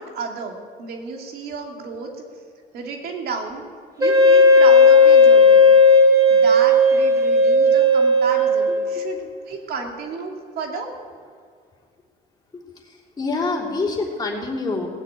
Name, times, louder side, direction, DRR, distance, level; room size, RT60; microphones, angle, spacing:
voice 1, 0.0-2.1 2.7-3.6 4.0-5.7 6.3-10.9, right 4 dB, 65° right, 1 dB, 2.6 m, -32 dB
Wind instrument woodwind instrument, 4.0-9.1, left 2 dB, 20° right, 1.9 m, -14 dB
voice 2, 12.5-14.9, left 3 dB, 25° left, -3 dB, 3.2 m, -26 dB
18.0 x 6.7 x 8.9 m, 2.1 s
cardioid pair, 110°, 17 cm